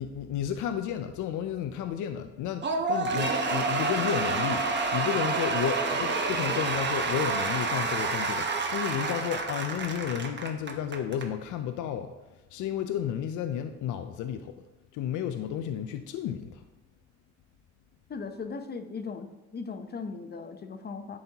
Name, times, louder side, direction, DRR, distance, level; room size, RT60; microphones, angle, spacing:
voice 1, 0.0-14.6 14.9-16.6, left 9 dB, 80° left, 8 dB, 0.5 m, -32 dB
Cheering / Applause / Crowd, 2.6-11.3, right 3 dB, 35° right, 0.9 m, -29 dB
voice 2, 18.1-19.3 19.5-21.2, left 4 dB, 35° left, 8 dB, 0.6 m, -38 dB
10.5 x 4.3 x 2.9 m, 1.1 s
cardioid pair, 90°, 30 cm